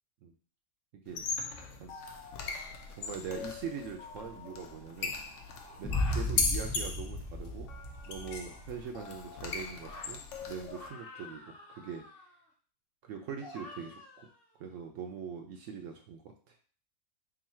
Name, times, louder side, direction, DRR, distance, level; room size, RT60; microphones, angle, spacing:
voice 1, 0.9-1.2 1.7-2.0 2.9-5.1 5.8-7.7 8.1-10.2 10.5-12.0 13.0-14.3 14.6-16.6, right 6 dB, 70° right, 3 dB, 0.8 m, -42 dB
sound 1, 1.1-10.9, left 4 dB, 65° left, 0.9 m, -38 dB
sound 2, 4.4-6.3 7.4-10.1 10.6-12.4 13.4-14.7, left 2 dB, 45° left, 1.2 m, -51 dB
sound 3, 5.8-8.8, left 1 dB, 5° left, 0.7 m, -35 dB
3.8 x 2.6 x 4.2 m, 0.43 s
omnidirectional pair, 1.5 m